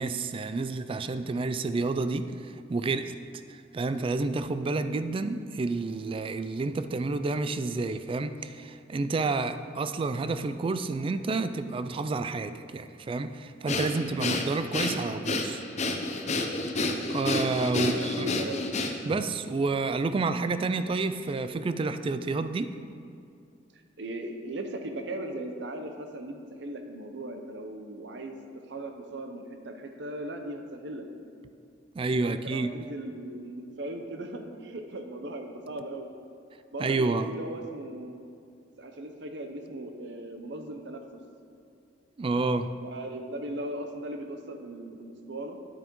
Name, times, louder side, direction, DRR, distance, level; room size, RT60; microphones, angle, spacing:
voice 1, 0.0-3.1 3.5-15.6 17.1-18.3 19.0-22.7 31.9-32.7 36.8-37.3 42.2-42.7, right 3 dB, 30° right, 11 dB, 0.3 m, -29 dB
Breathing, 13.7-19.2, left 2 dB, 40° left, 0.6 m, -29 dB
voice 2, 17.7-18.6 23.7-31.1 32.1-36.1 36.7-38.2 38.8-41.0 42.8-45.6, right 1 dB, 65° right, 6 dB, 0.7 m, -38 dB
10.0 x 8.8 x 3.0 m, 2.4 s
head